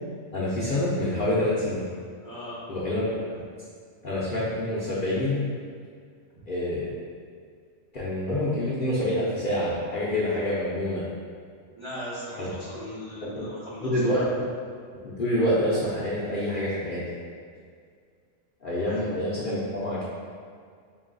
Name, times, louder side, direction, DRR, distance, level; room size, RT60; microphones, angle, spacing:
voice 1, 0.3-1.9 2.7-3.2 4.0-5.5 6.5-6.9 7.9-11.0 12.4-12.5 13.2-13.5 13.8-14.3 15.0-17.0 18.6-20.0, left 1 dB, 55° left, -8 dB, 0.6 m, -27 dB
voice 2, 2.2-2.6 6.3-6.4 11.8-14.2 18.9-19.0, equal, 35° right, -9 dB, 0.5 m, -39 dB
3.9 x 2.3 x 3.8 m, 2.1 s
omnidirectional pair, 1.4 m